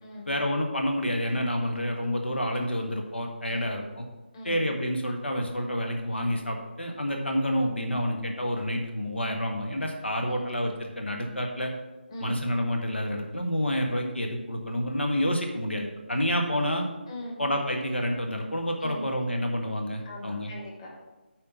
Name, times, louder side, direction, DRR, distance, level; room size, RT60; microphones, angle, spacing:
voice 1, 0.3-4.0 4.4-11.7 12.2-16.9 17.4-20.5, equal, 75° left, 2 dB, 1.5 m, -29 dB
voice 2, 3.5-3.8 4.3-4.6 10.2-10.4 12.1-12.3 17.1-17.4 18.8-19.1 20.0-21.0, left 1 dB, 25° left, -2 dB, 1.9 m, -40 dB
8.3 x 4.6 x 6.7 m, 1.1 s
figure-of-eight pair, 155°, 6 cm